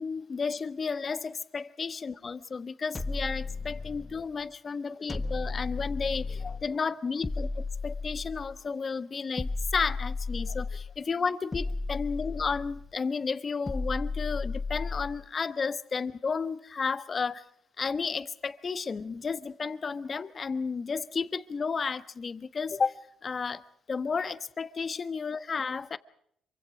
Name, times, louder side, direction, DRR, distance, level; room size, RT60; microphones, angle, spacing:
voice 1, 0.0-17.4 17.8-23.0 23.2-23.6 23.9-26.0, left 5 dB, 40° left, 1.2 m, -32 dB
sound 1, 2.9-4.3 5.1-6.7 7.2-8.6 9.4-11.0 11.5-12.9 13.7-15.3, left 3 dB, 25° left, 1.4 m, -34 dB
27.0 x 24.0 x 5.0 m
cardioid pair, 90°, 0 cm